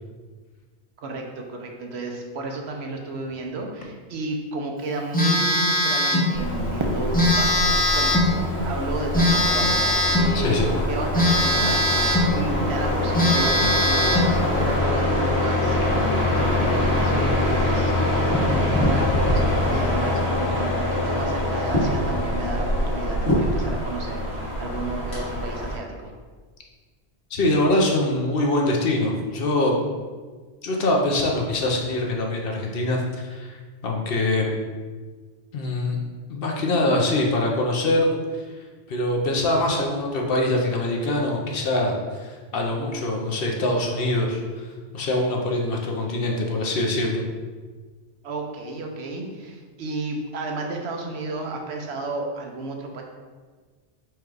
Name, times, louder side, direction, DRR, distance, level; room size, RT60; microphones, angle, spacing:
voice 1, 1.0-8.2 8.5-26.1 48.2-53.0, right 2 dB, 85° right, 2 dB, 0.9 m, -33 dB
Telephone, 5.1-6.3 7.1-8.3 9.1-10.3 11.1-12.3 12.8-12.9 13.1-14.3, left 1 dB, 10° left, 0.5 m, -20 dB
sound 1, 6.3-25.7, left 1 dB, 80° left, 1.6 m, -24 dB
Fireworks, 6.8-9.8, right 2 dB, 45° right, 0.4 m, -35 dB
voice 2, 10.3-10.7 27.3-29.8 30.6-34.6 35.5-36.0 36.3-38.1 38.9-44.7 44.9-47.2, left 1 dB, 65° left, 0 dB, 0.9 m, -23 dB
4.6 x 2.4 x 4.7 m, 1.4 s
omnidirectional pair, 1.1 m